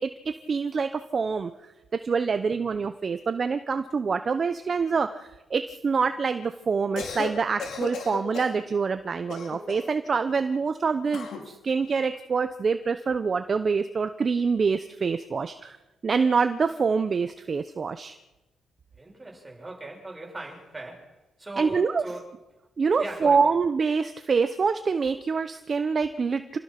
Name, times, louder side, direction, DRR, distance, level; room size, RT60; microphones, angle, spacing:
voice 1, 0.0-1.5 1.9-15.8 16.0-18.2 21.6-22.0 22.8-26.6, right 5 dB, 40° right, 10 dB, 0.8 m, -26 dB
voice 2, 2.3-2.7 19.0-22.3 23.0-23.4, right 2 dB, 15° right, 0 dB, 7.5 m, -39 dB
Cough, 6.8-7.3 7.6-8.6 9.3-10.0 11.1-11.5, left 5 dB, 70° left, 4.7 m, -35 dB
28.0 x 18.0 x 6.0 m, 1.1 s
cardioid pair, 110°, 0 cm